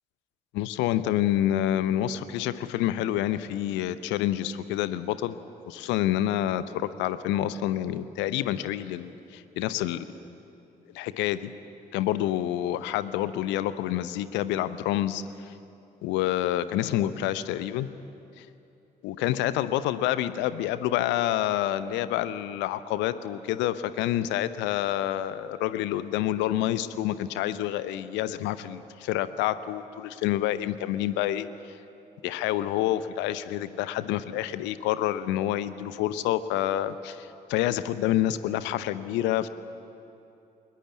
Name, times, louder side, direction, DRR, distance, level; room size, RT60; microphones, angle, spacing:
voice 1, 0.5-5.4 5.7-10.0 10.9-11.5 11.9-15.5 16.0-17.9 18.4-18.5 19.0-31.5 32.2-39.5, left 12 dB, 65° left, 14 dB, 0.8 m, -28 dB
22.0 x 20.5 x 8.4 m, 2.7 s
figure-of-eight pair, 40°, 20 cm